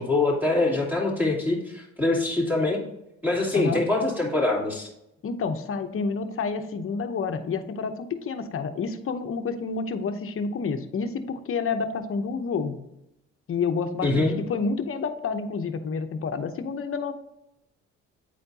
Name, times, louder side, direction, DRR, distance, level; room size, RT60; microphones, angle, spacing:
voice 1, 0.0-2.8 3.2-4.9 14.0-14.4, left 2 dB, 5° right, -3 dB, 2.5 m, -24 dB
voice 2, 3.5-3.8 5.2-12.8 13.5-17.1, left 5 dB, 45° left, 8 dB, 0.8 m, -29 dB
9.0 x 4.3 x 2.7 m, 0.85 s
cardioid pair, 90°, 30 cm